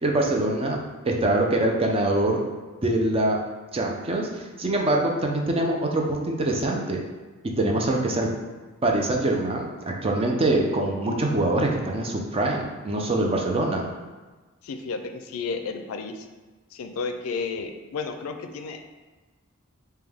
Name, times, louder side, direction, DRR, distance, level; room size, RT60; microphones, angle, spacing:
voice 1, 0.0-0.8 1.0-2.4 2.8-3.4 3.7-7.0 7.6-8.3 8.8-9.7 10.0-13.9, right 2 dB, 25° right, 0 dB, 0.5 m, -24 dB
voice 2, 14.6-16.3 16.7-18.9, left 4 dB, 80° left, 7 dB, 0.4 m, -32 dB
5.0 x 2.2 x 3.4 m, 1.3 s
head